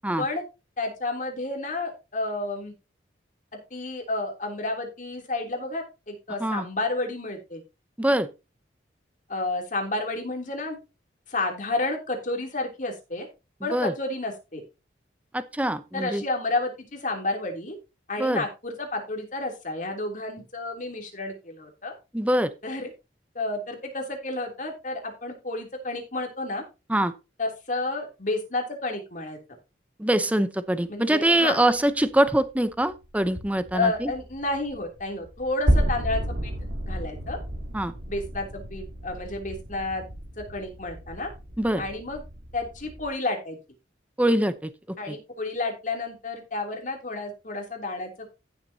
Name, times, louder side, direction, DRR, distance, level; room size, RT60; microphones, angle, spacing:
voice 1, 0.8-2.7 3.5-7.6 9.3-10.8 11.3-13.3 13.6-14.6 15.9-17.8 18.1-21.9 22.6-22.9 23.3-26.6 27.4-29.4 30.9-31.6 33.7-36.5 36.9-37.4 38.1-40.0 40.4-41.3 41.8-42.2 42.5-43.6 45.0-48.1, left 2 dB, 45° left, 3 dB, 3.1 m, -31 dB
voice 2, 8.0-8.3 13.7-13.9 15.3-16.2 18.2-18.4 22.1-22.5 26.9-27.1 30.0-34.1 37.7-37.9 41.6-41.8 44.2-44.7 45.1-45.2, right 1 dB, 10° right, 12 dB, 0.8 m, -23 dB
sound 1, 31.8-32.2 32.5-43.1, equal, 65° right, 2.6 m, -31 dB
15.5 x 7.4 x 2.8 m, 0.27 s
head